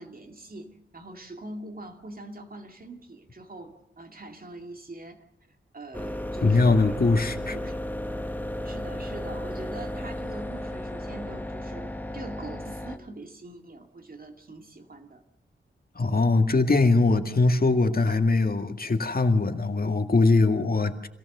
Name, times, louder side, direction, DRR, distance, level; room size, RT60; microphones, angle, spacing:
voice 1, 0.0-5.2 5.7-7.0 7.4-7.8 8.6-15.2, right 2 dB, 45° right, 5 dB, 2.3 m, -43 dB
sound 1, 5.9-13.0, left 1 dB, 10° left, 1.5 m, -34 dB
voice 2, 6.4-7.5 16.0-21.1, left 3 dB, 45° left, 6 dB, 2.0 m, -22 dB
26.0 x 17.0 x 6.8 m, 0.79 s
wide cardioid pair, 90°, 20 cm